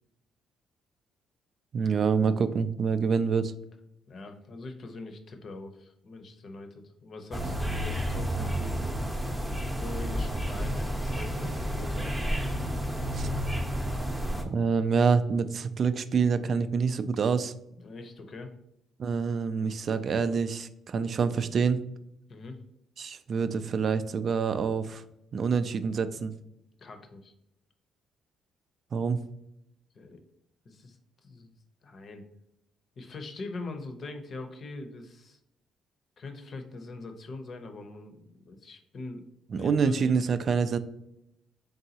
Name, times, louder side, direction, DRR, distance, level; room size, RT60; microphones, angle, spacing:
voice 1, 1.7-3.5 13.1-13.3 14.5-17.5 19.0-21.8 23.0-25.0 25.3-26.3 28.9-29.2 39.5-40.8, right 5 dB, 50° right, 12 dB, 0.3 m, -26 dB
voice 2, 4.1-9.1 9.7-12.2 17.8-18.5 22.3-22.6 26.8-27.3 29.9-30.2 30.6-31.5 31.8-32.3 33.0-35.4 36.2-39.2 39.5-39.9, left 3 dB, 50° left, 6 dB, 0.7 m, -42 dB
sound 1, 7.3-14.4, equal, 5° right, 0.7 m, -31 dB
3.9 x 3.6 x 2.8 m, 0.81 s
cardioid pair, 85°, 0 cm